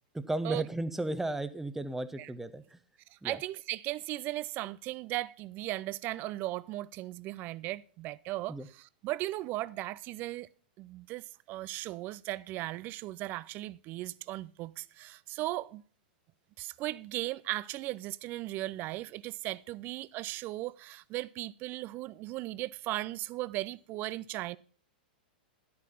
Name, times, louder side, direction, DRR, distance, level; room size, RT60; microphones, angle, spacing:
voice 1, 0.1-2.8 3.2-3.4 8.5-8.7, right 1 dB, 5° right, 0.9 m, -35 dB
voice 2, 3.1-10.5 10.8-15.8 16.6-24.6, right 17 dB, 40° right, 0.5 m, -37 dB
10.5 x 8.7 x 5.5 m
hypercardioid pair, 115°, 5 cm